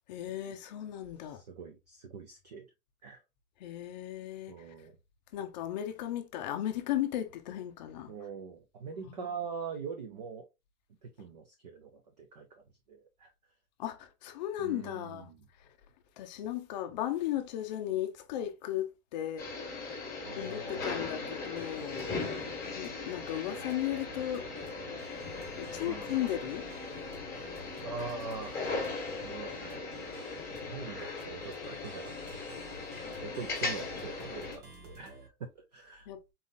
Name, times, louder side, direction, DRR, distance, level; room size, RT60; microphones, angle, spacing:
voice 1, 0.1-1.4 3.6-4.7 5.3-8.1 9.0-9.2 13.8-15.3 15.6-15.7 16.2-19.5 20.4-22.1 22.7-24.5 25.6-26.7 36.1-36.2, left 12 dB, 30° left, 0.6 m, -36 dB
voice 2, 1.3-2.7 3.0-3.2 4.5-5.0 8.1-10.5 11.0-13.3 14.6-15.5 20.2-21.5 25.8-26.2 27.8-28.6 29.2-30.1 30.4-32.4 33.2-36.1, right 5 dB, 30° right, 0.4 m, -43 dB
sound 1, 19.4-34.6, left 3 dB, 5° left, 1.4 m, -39 dB
sound 2, 21.6-35.3, right 2 dB, 85° right, 1.5 m, -52 dB
4.1 x 3.6 x 2.5 m
hypercardioid pair, 155°, 44 cm